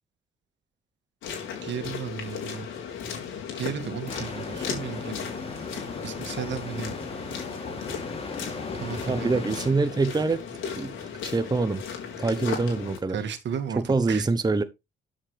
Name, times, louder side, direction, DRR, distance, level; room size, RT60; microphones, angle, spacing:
sound 1, 1.2-13.0, left 7 dB, 80° left, 4.3 m, -36 dB
voice 1, 1.6-2.7 3.5-5.3 6.0-7.0 8.7-9.8 13.1-14.3, right 7 dB, 65° right, 2.2 m, -34 dB
sound 2, 4.1-9.7, left 3 dB, 30° left, 3.1 m, -37 dB
voice 2, 9.0-10.4 10.7-11.0 11.2-11.8 12.2-13.2 13.9-14.6, right 3 dB, 20° right, 1.0 m, -25 dB
12.5 x 7.5 x 3.4 m
cardioid pair, 90°, 20 cm